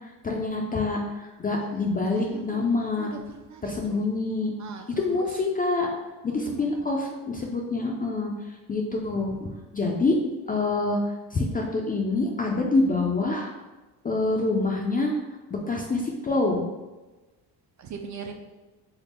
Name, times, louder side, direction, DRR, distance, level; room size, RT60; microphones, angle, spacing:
voice 1, 0.2-3.1 3.6-4.5 5.0-5.9 6.2-7.0 7.3-8.3 8.7-9.5 9.7-10.2 10.5-11.0 11.3-13.5 14.0-15.1 15.7-16.7, left 3 dB, 20° left, 0 dB, 0.3 m, -26 dB
voice 2, 2.1-2.6 3.0-4.0 4.6-5.4 6.3-6.7 17.8-18.3, right 6 dB, 45° right, 4 dB, 0.4 m, -40 dB
3.5 x 2.1 x 4.1 m, 1.1 s
cardioid pair, 115°, 43 cm